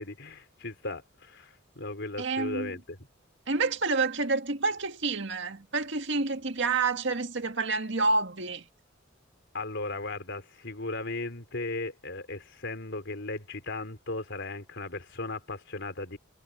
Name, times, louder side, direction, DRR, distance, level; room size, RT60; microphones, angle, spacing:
voice 1, 0.0-3.0 9.5-16.2, left 2 dB, 65° left, 4.3 m, -36 dB
voice 2, 2.2-2.8 3.5-8.7, right 3 dB, 65° right, 1.9 m, -28 dB
head